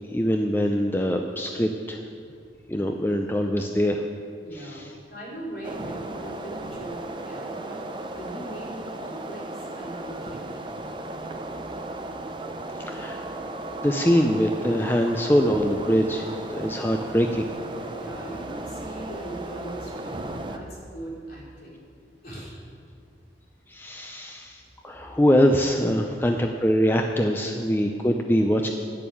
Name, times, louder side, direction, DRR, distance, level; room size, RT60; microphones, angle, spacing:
voice 1, 0.1-2.0 2.7-4.0 4.5-4.9 12.8-13.3 13.8-17.4 23.7-28.7, equal, 10° left, 3 dB, 0.4 m, -23 dB
voice 2, 4.4-10.6 17.9-21.8 22.2-22.6, right 1 dB, 50° left, -5 dB, 3.7 m, -40 dB
sound 1, 5.6-20.6, right 2 dB, 25° right, 0.6 m, -36 dB
10.5 x 6.9 x 8.6 m, 2.2 s
head